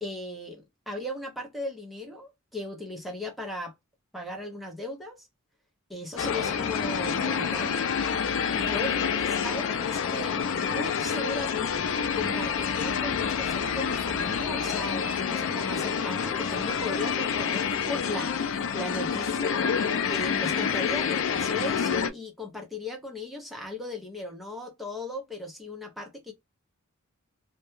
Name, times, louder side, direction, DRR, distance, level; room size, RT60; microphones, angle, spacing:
voice 1, 0.0-3.7 4.1-5.3 5.9-7.8 8.5-19.6 20.1-26.3, left 2 dB, ahead, 0.6 m, -37 dB
sound 1, 6.2-22.1, left 7 dB, 60° left, 0.4 m, -28 dB
2.3 x 2.1 x 2.9 m
head